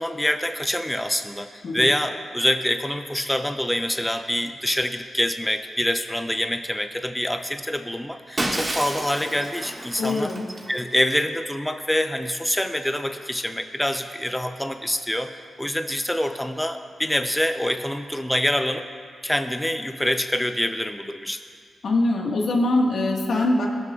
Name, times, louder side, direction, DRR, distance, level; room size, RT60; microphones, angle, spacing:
voice 1, 0.0-10.3 10.7-15.3 15.6-18.9 19.2-21.4, left 1 dB, 5° left, 7 dB, 0.6 m, -25 dB
Shatter, 8.4-11.1, right 1 dB, 30° right, 1.7 m, -30 dB
voice 2, 10.0-10.4 21.8-23.7, left 2 dB, 75° left, -1 dB, 1.6 m, -22 dB
17.0 x 12.0 x 2.4 m, 2.1 s
cardioid pair, 60°, 0 cm